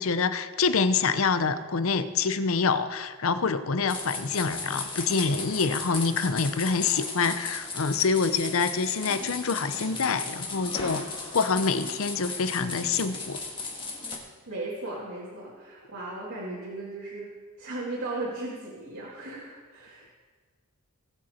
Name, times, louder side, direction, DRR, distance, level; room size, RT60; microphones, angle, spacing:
voice 1, 0.0-11.1 11.3-13.4, left 5 dB, 65° left, 11 dB, 0.7 m, -26 dB
sound 1, 3.9-14.2, left 3 dB, 25° left, 1.8 m, -36 dB
voice 2, 14.5-17.3 17.6-20.1, right 2 dB, 70° right, -6 dB, 2.2 m, -36 dB
19.5 x 7.8 x 4.4 m, 1.5 s
head